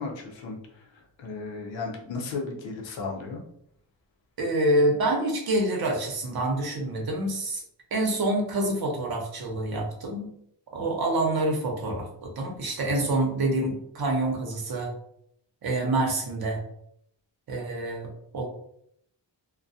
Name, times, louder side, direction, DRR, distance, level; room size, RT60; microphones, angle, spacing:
voice 1, 0.0-3.4, left 4 dB, 90° left, 1 dB, 0.7 m, -35 dB
voice 2, 4.4-7.6 7.9-10.3 10.7-14.9 15.6-16.6 17.5-18.5, right 1 dB, 55° right, 1 dB, 0.8 m, -27 dB
2.2 x 2.2 x 2.6 m, 0.71 s
cardioid pair, 70°, 44 cm